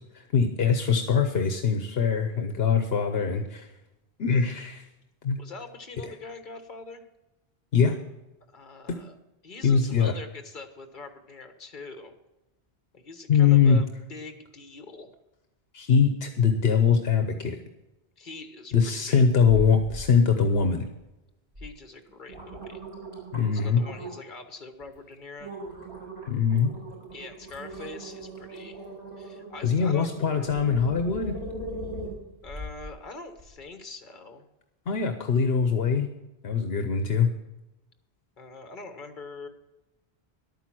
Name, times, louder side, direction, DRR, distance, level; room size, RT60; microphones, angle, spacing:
voice 1, 0.1-3.7 4.2-4.8 5.2-5.4 7.7-8.0 9.6-10.1 13.3-13.8 15.7-17.6 18.7-20.8 23.3-23.8 26.3-26.7 29.6-31.3 34.9-36.1 36.4-37.3, left 6 dB, 70° left, 7 dB, 1.2 m, -22 dB
voice 2, 5.4-7.0 8.5-9.2 9.4-12.1 12.9-15.1 18.2-19.2 21.6-22.8 23.5-25.5 27.1-28.8 29.2-30.1 32.4-34.4 38.4-39.5, left 3 dB, 50° left, 7 dB, 1.5 m, -43 dB
sound 1, 19.4-20.1 20.5-21.0 21.5-21.7 22.1-24.3 24.8-25.0 25.4-32.9 33.4-33.5, right 1 dB, 85° right, 5.4 m, -39 dB
11.5 x 9.2 x 6.1 m, 0.98 s
omnidirectional pair, 1.1 m